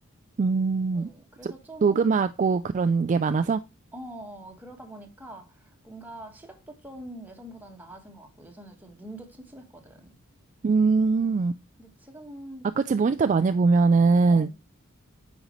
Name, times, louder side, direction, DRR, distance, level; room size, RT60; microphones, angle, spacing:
voice 1, 0.4-1.1 1.4-1.5 1.8-3.6 10.6-11.5 12.8-14.5, right 4 dB, 35° right, 0.3 m, -22 dB
voice 2, 0.9-2.1 3.9-10.1 11.0-12.7 14.3-14.5, right 1 dB, 10° right, 1.6 m, -45 dB
8.9 x 5.3 x 3.0 m
head